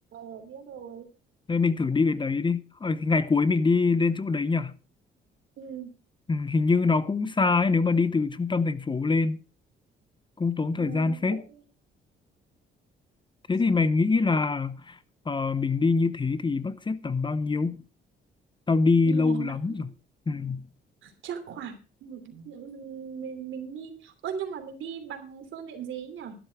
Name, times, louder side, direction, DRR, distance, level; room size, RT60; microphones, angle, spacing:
voice 1, 0.1-1.1 5.6-5.9 10.8-11.6 19.0-19.8 21.0-21.7 22.0-26.3, right 7 dB, 75° right, 3.1 m, -38 dB
voice 2, 1.5-4.8 6.3-9.4 10.4-11.4 13.5-15.0 15.3-17.8 18.7-19.9 20.3-20.7, left 4 dB, 25° left, 0.7 m, -24 dB
12.0 x 11.0 x 4.6 m
cardioid pair, 90°, 20 cm